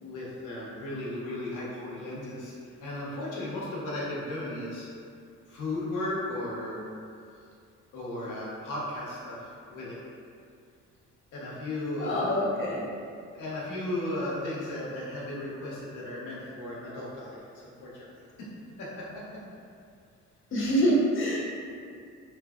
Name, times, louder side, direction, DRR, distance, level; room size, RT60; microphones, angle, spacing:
voice 1, 0.0-2.5 2.8-4.9 5.5-6.8 7.9-10.0 11.3-12.3 13.3-18.1 18.4-18.5 18.8-19.2, left 1 dB, 90° left, -6 dB, 0.9 m, -35 dB
voice 2, 12.0-12.9 20.5-21.4, equal, 45° left, -5 dB, 0.8 m, -25 dB
3.2 x 2.7 x 2.3 m, 2.4 s
cardioid pair, 90°, 30 cm